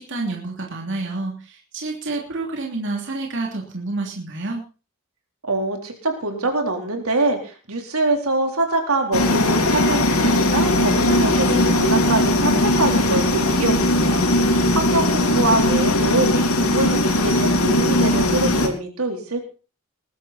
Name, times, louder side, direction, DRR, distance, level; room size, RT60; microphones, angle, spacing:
voice 1, 0.0-4.6, right 2 dB, 60° right, 0 dB, 3.0 m, -29 dB
voice 2, 5.4-19.5, right 2 dB, 85° right, 4 dB, 3.9 m, -24 dB
sound 1, 9.1-18.7, left 1 dB, 90° left, 3.3 m, -19 dB
20.5 x 12.0 x 4.3 m, 0.36 s
head